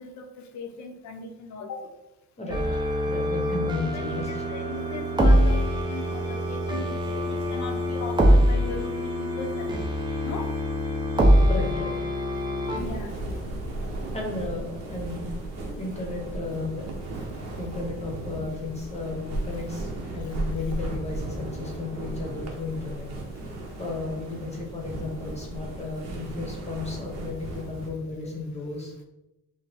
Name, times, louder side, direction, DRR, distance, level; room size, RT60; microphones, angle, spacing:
voice 1, 0.0-1.9 4.0-4.1 4.5-9.7 10.2-10.5 12.7-13.2, left 3 dB, 65° left, 5 dB, 0.7 m, -38 dB
voice 2, 2.4-4.4 11.5-12.2 14.1-16.9 17.5-23.1 23.8-28.9, left 3 dB, 20° left, 0 dB, 0.9 m, -34 dB
sound 1, 2.5-12.8, equal, 15° right, 0.7 m, -24 dB
sound 2, 12.7-27.9, right 2 dB, 55° right, 1.0 m, -35 dB
6.2 x 2.1 x 3.4 m, 0.97 s
cardioid pair, 130°, 31 cm